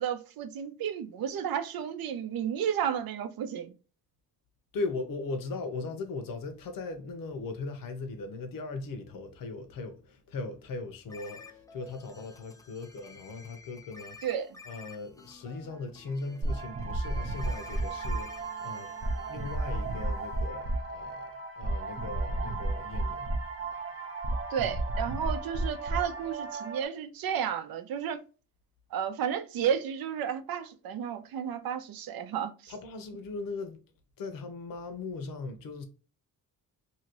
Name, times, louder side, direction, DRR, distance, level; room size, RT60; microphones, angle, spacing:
voice 1, 0.0-3.7 14.2-14.6 24.5-28.2 28.9-32.7, right 8 dB, 75° right, 0.6 m, -32 dB
voice 2, 4.7-14.2 14.7-18.3 18.6-23.4 32.7-33.8 34.2-35.8, left 3 dB, 70° left, 0.8 m, -39 dB
sound 1, 11.1-20.5, left 4 dB, 10° left, 0.4 m, -52 dB
sound 2, 16.4-26.8, right 2 dB, 35° right, 0.7 m, -33 dB
2.9 x 2.8 x 2.8 m
cardioid pair, 120°, 36 cm